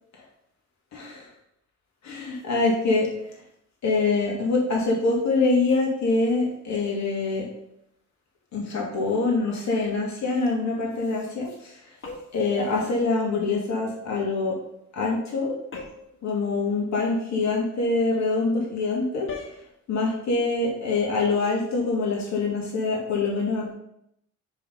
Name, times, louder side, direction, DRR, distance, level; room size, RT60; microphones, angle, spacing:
voice 1, 2.0-3.1 3.8-7.5 8.5-11.8 12.3-14.6 14.9-15.5 16.2-19.3 19.9-23.7, left 3 dB, 65° left, -2 dB, 2.6 m, -24 dB
sound 1, 12.0-12.5 15.7-16.2 19.3-19.6, left 4 dB, 45° left, 1.7 m, -38 dB
5.8 x 4.5 x 5.4 m, 0.77 s
cardioid pair, 90°, 30 cm